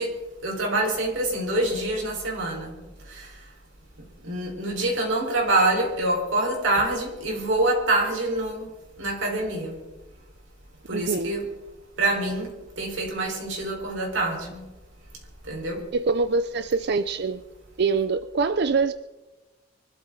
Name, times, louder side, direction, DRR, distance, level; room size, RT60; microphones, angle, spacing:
voice 1, 0.0-2.8 3.1-3.3 4.2-8.7 9.0-9.8 10.9-11.5 12.0-12.5 12.8-14.6 15.5-15.8, right 2 dB, 70° right, 0 dB, 4.3 m, -26 dB
voice 2, 10.9-11.4 15.9-17.4 17.8-18.9, right 4 dB, 55° right, 12 dB, 0.5 m, -24 dB
24.0 x 12.5 x 3.8 m, 1.1 s
head